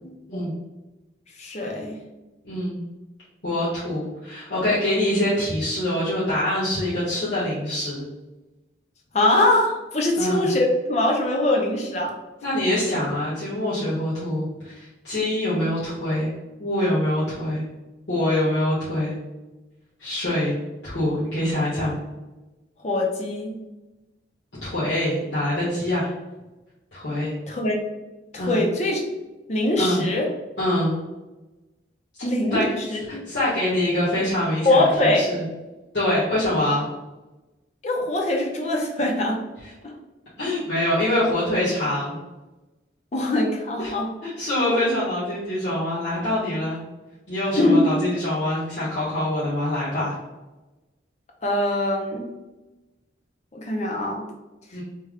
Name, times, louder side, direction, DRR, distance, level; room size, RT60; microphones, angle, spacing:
voice 1, 1.4-2.0 9.1-12.1 22.8-23.6 27.5-27.8 28.3-29.0 29.5-30.3 32.2-33.2 34.6-35.3 37.8-39.4 39.8-39.9 43.1-44.1 44.7-44.8 47.5-47.8 51.4-52.3 53.5-54.3, left 1 dB, 35° left, 0 dB, 0.6 m, -22 dB
voice 2, 2.4-2.8 3.4-8.1 10.2-10.5 12.4-16.3 16.6-17.6 18.1-19.2 20.0-20.5 20.8-22.0 24.6-26.1 26.9-27.3 28.4-28.6 29.8-30.0 30.6-30.9 32.5-35.4 35.9-36.9 40.4-42.2 43.8-43.9 44.2-46.8 47.3-50.1 54.7-54.8, left 1 dB, 65° left, -11 dB, 1.2 m, -24 dB
3.3 x 2.3 x 3.5 m, 1.1 s
head